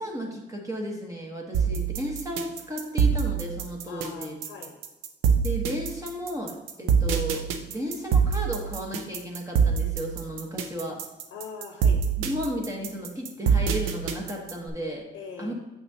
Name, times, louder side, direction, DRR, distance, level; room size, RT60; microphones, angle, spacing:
voice 1, 0.0-4.4 5.4-11.0 12.2-15.1 15.4-15.5, equal, 15° right, -1 dB, 1.1 m, -34 dB
voice 2, 1.5-1.8 3.9-4.7 11.3-12.0 15.1-15.5, left 5 dB, 80° left, 3 dB, 0.9 m, -41 dB
sound 1, 1.5-14.7, right 6 dB, 85° right, 0.6 m, -25 dB
7.1 x 5.9 x 2.8 m, 1.1 s
cardioid pair, 90°, 20 cm